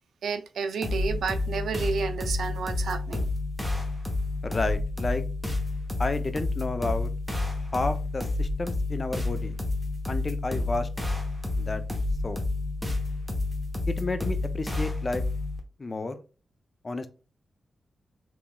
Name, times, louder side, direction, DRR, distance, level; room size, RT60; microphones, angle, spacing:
voice 1, 0.2-3.3, right 5 dB, 80° right, 0.4 m, -31 dB
sound 1, 0.8-15.6, left 2 dB, 5° left, 1.0 m, -30 dB
voice 2, 4.4-5.2 6.0-7.1 7.7-9.5 10.1-10.9 11.6-11.8 12.2-12.4 13.9-15.2 15.8-16.2 16.8-17.1, left 3 dB, 35° left, 0.5 m, -31 dB
3.3 x 3.0 x 2.2 m
cardioid pair, 70°, 0 cm